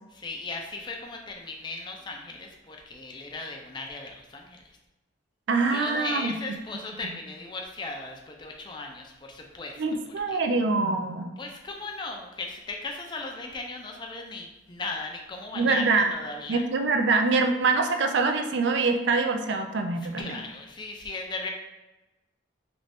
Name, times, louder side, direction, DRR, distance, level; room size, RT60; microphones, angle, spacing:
voice 1, 0.1-4.6 5.7-9.8 10.3-10.4 11.4-16.6 20.2-21.5, left 3 dB, 25° left, 1 dB, 0.4 m, -37 dB
voice 2, 5.5-6.3 7.0-7.1 9.8-11.3 15.5-16.1 16.5-20.4, right 3 dB, 65° right, 6 dB, 0.4 m, -24 dB
3.1 x 2.5 x 3.3 m, 1.1 s
head